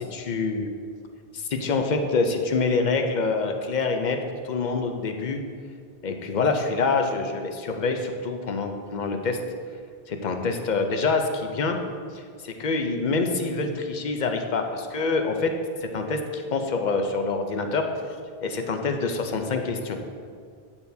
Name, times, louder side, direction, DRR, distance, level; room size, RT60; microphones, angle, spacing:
voice 1, 0.1-0.7 1.5-4.2 4.4-5.4 6.0-9.4 10.1-11.8 12.4-17.9 18.4-20.0, left 4 dB, 55° left, 5 dB, 0.7 m, -26 dB
8.6 x 6.7 x 2.7 m, 2.1 s
omnidirectional pair, 1.0 m